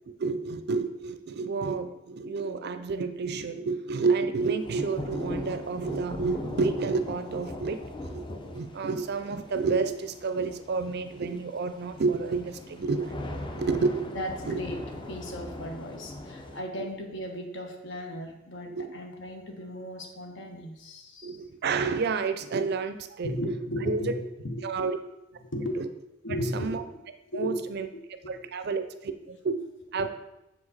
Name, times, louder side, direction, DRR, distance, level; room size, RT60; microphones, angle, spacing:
voice 1, 0.1-13.1 13.6-14.1 14.5-14.6 18.7-18.9 21.2-23.5 23.9-24.0 24.6-25.0 25.8-25.9 26.5-26.8 27.3-27.9 28.3-29.6 29.9-30.1, right 4 dB, 55° right, 9 dB, 0.5 m, -30 dB
sound 1, 4.4-16.6, left 1 dB, 25° left, 0.6 m, -40 dB
voice 2, 14.1-14.8 15.1-21.4 23.2-24.7 25.4-25.8 26.2-26.7 27.3-28.4, equal, 65° left, 3 dB, 1.2 m, -35 dB
6.8 x 4.9 x 4.1 m, 0.93 s
head